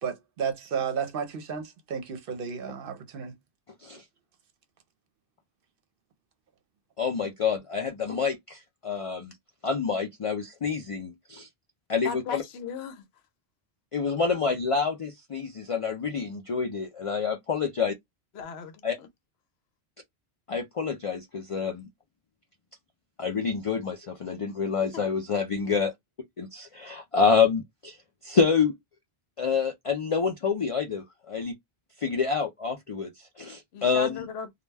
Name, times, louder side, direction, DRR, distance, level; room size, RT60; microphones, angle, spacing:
voice 1, 0.0-3.3, right 6 dB, 65° right, 0.8 m, -32 dB
voice 2, 7.0-9.3 9.6-11.5 11.9-12.4 13.9-17.9 18.8-19.0 20.5-21.8 23.2-25.9 26.4-28.0 28.2-28.7 29.4-31.6 32.0-33.1 33.4-34.2, left 5 dB, 60° left, 0.3 m, -27 dB
voice 3, 12.0-13.0 18.3-19.1 24.8-25.0 33.7-34.5, left 5 dB, 80° left, 0.8 m, -37 dB
2.2 x 2.1 x 3.2 m
omnidirectional pair, 1.1 m